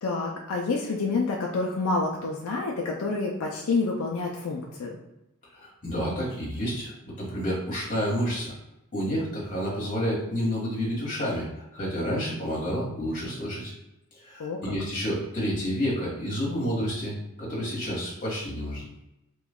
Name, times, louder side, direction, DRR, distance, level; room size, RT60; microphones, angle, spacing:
voice 1, 0.0-5.0 14.4-14.7, left 3 dB, 80° left, -1 dB, 0.5 m, -28 dB
voice 2, 5.5-8.5 8.9-13.7 14.2-18.8, equal, 35° left, -6 dB, 1.2 m, -29 dB
3.0 x 2.3 x 3.5 m, 0.90 s
head